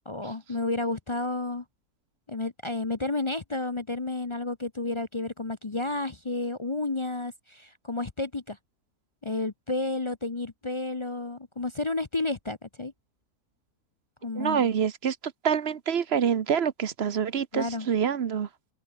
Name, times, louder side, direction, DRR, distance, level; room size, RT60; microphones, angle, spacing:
voice 1, 0.1-1.6 2.3-8.6 9.2-12.9 14.2-14.7 17.5-17.9, left 2 dB, 30° left, 0.6 m, -31 dB
voice 2, 14.4-15.2 15.4-18.5, right 7 dB, 45° right, 1.0 m, -26 dB
open air
omnidirectional pair, 1.7 m